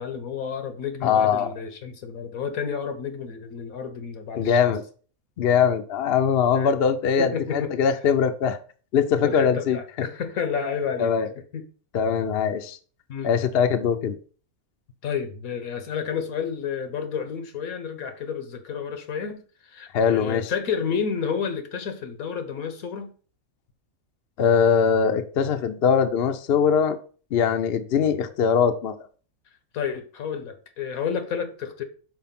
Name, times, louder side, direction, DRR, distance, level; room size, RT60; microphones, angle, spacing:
voice 1, 0.0-4.7 6.6-6.7 7.2-7.7 9.2-11.1 11.5-11.6 13.1-13.3 15.0-23.1 29.7-31.8, left 7 dB, 80° left, 1.5 m, -30 dB
voice 2, 1.0-1.5 4.4-4.8 5.4-8.6 8.9-9.8 11.0-11.3 11.9-12.8 13.2-14.2 19.9-20.5 24.4-27.0 27.3-29.0, left 7 dB, 55° left, 0.8 m, -21 dB
5.7 x 4.5 x 5.8 m
omnidirectional pair, 1.5 m